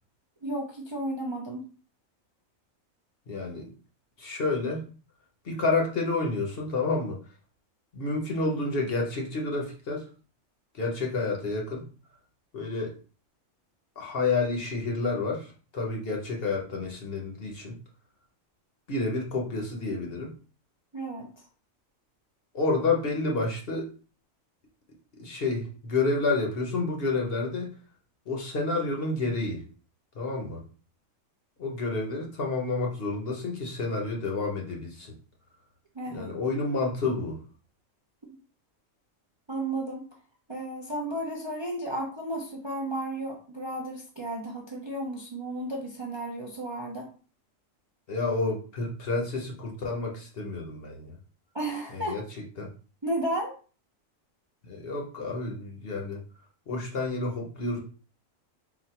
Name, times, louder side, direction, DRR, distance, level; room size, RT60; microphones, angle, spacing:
voice 1, 0.4-1.7 20.9-21.4 35.9-36.3 39.5-40.1 40.5-47.1 51.5-52.2 53.0-53.6, right 1 dB, 30° right, -1 dB, 0.6 m, -33 dB
voice 2, 3.3-3.7 4.2-4.9 5.4-7.2 7.9-10.1 10.7-11.8 12.5-12.9 14.0-17.7 18.9-20.3 22.5-23.9 25.2-27.7 28.3-29.6 30.1-30.6 31.6-35.1 36.1-37.4 48.1-51.2 51.9-52.2 52.6-52.7 54.6-56.2 56.7-57.8, left 3 dB, 50° left, 0 dB, 1.1 m, -29 dB
4.1 x 2.4 x 4.3 m, 0.37 s
omnidirectional pair, 1.4 m